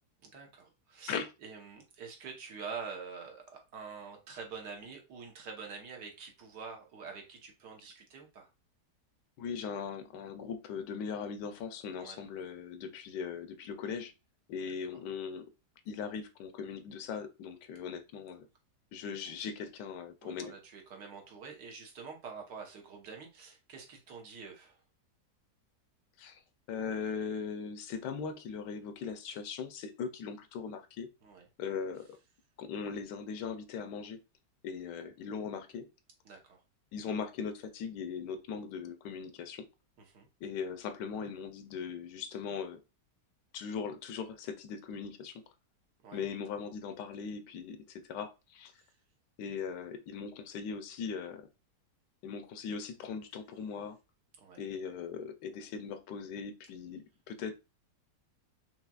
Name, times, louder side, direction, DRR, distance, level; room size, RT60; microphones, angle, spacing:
voice 1, 0.2-8.5 12.0-12.2 14.9-15.0 20.2-24.8 31.2-31.5 36.2-36.6 40.0-40.3 46.0-46.2 48.7-48.9 54.4-54.6, right 5 dB, 80° right, 1.7 m, -46 dB
voice 2, 9.4-14.1 14.5-15.5 15.9-18.5 18.9-20.5 26.2-26.4 26.7-31.1 31.6-32.1 32.6-34.2 34.6-35.9 36.9-39.6 40.4-42.8 43.5-45.4 46.1-48.7 49.4-51.5 52.2-54.0 54.6-57.6, left 6 dB, 85° left, 1.3 m, -39 dB
5.6 x 3.0 x 2.3 m
omnidirectional pair, 1.8 m